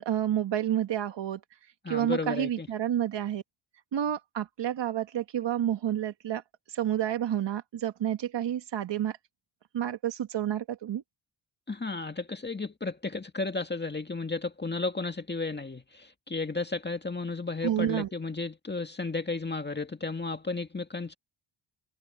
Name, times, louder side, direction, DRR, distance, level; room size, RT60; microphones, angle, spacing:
voice 1, 0.0-1.4 1.9-3.4 3.9-6.4 6.7-9.2 9.7-11.0 17.6-18.1, right 11 dB, 60° right, 1.5 m, -29 dB
voice 2, 1.8-2.7 11.7-21.1, left 3 dB, 20° left, 2.0 m, -33 dB
cardioid pair, 75°, 48 cm